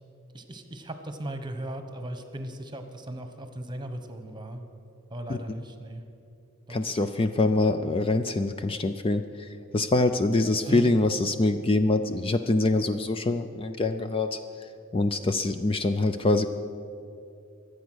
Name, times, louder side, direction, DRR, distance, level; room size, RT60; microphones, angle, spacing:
voice 1, 0.3-4.6 5.1-6.0 6.7-7.4 10.6-10.9, right 1 dB, 20° right, 7 dB, 1.2 m, -37 dB
voice 2, 6.7-14.4 14.9-16.5, left 2 dB, 25° left, 9 dB, 0.5 m, -25 dB
23.5 x 8.2 x 6.3 m, 2.6 s
head